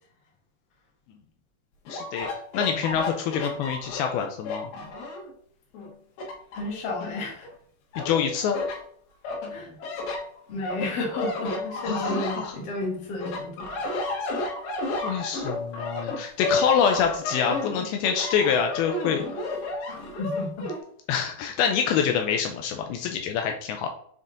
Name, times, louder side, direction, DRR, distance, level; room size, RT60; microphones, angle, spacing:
voice 1, 1.9-2.3 2.5-4.7 8.0-8.6 11.9-12.5 15.0-19.2 21.1-23.9, left 7 dB, 90° left, 4 dB, 2.2 m, -26 dB
sound 1, 1.9-5.3 5.7-7.5 7.9-8.8 9.2-12.9 13.2-20.8, left 2 dB, 75° left, 3.5 m, -32 dB
voice 2, 6.5-7.5 9.5-9.8 10.5-14.0 19.9-20.7, left 2 dB, 50° left, -1 dB, 1.9 m, -32 dB
7.5 x 3.7 x 3.9 m, 0.64 s
omnidirectional pair, 5.0 m